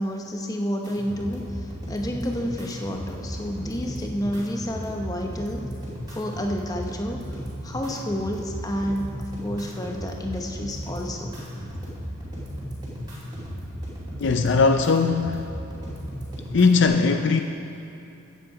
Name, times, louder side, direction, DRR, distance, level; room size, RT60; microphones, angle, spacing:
voice 1, 0.0-5.6 6.1-7.4 7.6-9.1 9.4-11.3, equal, 15° left, 2 dB, 0.9 m, -30 dB
sound 1, 0.8-16.8, equal, 20° right, 2.9 m, -35 dB
voice 2, 14.2-15.5 16.5-17.4, left 4 dB, 55° left, 6 dB, 0.5 m, -19 dB
14.5 x 9.0 x 4.9 m, 2.8 s
head